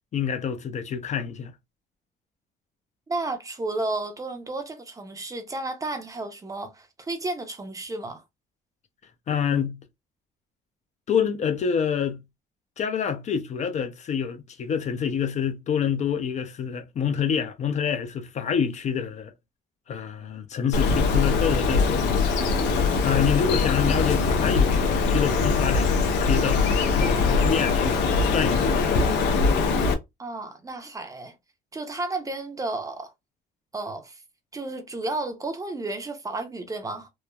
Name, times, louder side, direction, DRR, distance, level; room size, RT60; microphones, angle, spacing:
voice 1, 0.1-1.5 9.3-9.8 11.1-12.2 12.8-19.3 19.9-26.6 26.9-28.7, left 7 dB, 45° left, 0.5 m, -27 dB
voice 2, 3.1-8.2 30.2-31.4 31.7-33.1 33.7-34.2 34.5-37.1, right 2 dB, 20° right, 0.6 m, -32 dB
Bird, 20.7-29.9, left 4 dB, 90° left, 0.6 m, -22 dB
3.0 x 2.1 x 2.2 m
cardioid pair, 110°, 17 cm